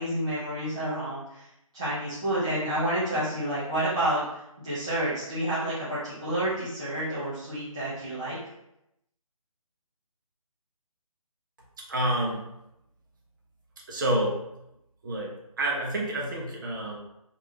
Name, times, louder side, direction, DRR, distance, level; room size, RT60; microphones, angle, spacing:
voice 1, 0.0-1.5 1.7-8.4, right 1 dB, 10° right, -14 dB, 0.3 m, -29 dB
voice 2, 11.8-12.4 13.9-14.4 15.0-17.0, right 1 dB, 35° right, -2 dB, 0.9 m, -28 dB
4.6 x 2.7 x 2.9 m, 0.84 s
figure-of-eight pair, 160°, 18 cm